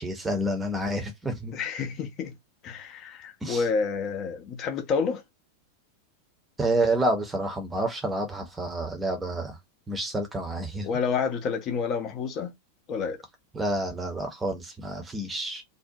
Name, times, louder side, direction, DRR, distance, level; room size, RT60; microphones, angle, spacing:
voice 1, 0.0-1.5 3.4-3.6 6.6-9.5 9.9-10.9 13.5-15.6, right 1 dB, 10° right, 0.8 m, -29 dB
voice 2, 1.5-2.3 2.6-5.2 10.8-12.5 12.9-13.2, left 5 dB, 35° left, 0.6 m, -29 dB
2.6 x 2.1 x 2.7 m
figure-of-eight pair, 90°, 0 cm